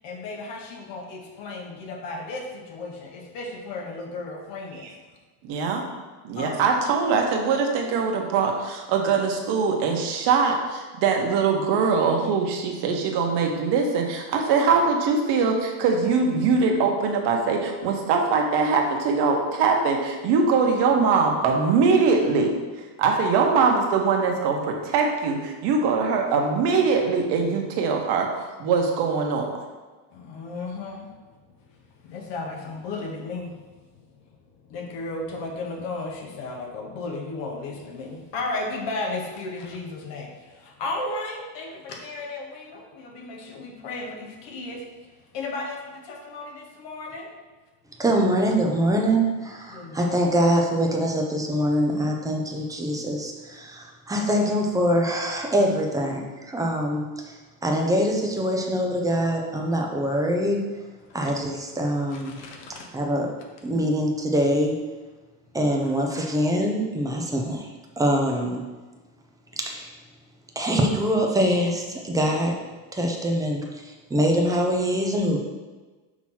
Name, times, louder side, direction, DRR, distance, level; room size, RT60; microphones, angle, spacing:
voice 1, 0.0-5.0 6.4-6.7 30.1-47.3 49.7-50.2 61.1-61.3 62.1-62.9, left 2 dB, 65° left, 1 dB, 1.2 m, -35 dB
voice 2, 5.4-5.8 6.2-22.5 22.8-29.5, right 5 dB, 60° right, 2 dB, 1.2 m, -22 dB
voice 3, 48.0-57.3 57.6-60.6 61.1-62.4 62.9-63.3 63.6-64.7 65.5-67.7 68.0-68.6 69.6-69.9 70.6-72.5 72.9-75.4, equal, 10° right, 0 dB, 0.4 m, -24 dB
6.1 x 3.0 x 5.7 m, 1.3 s
cardioid pair, 145°, 47 cm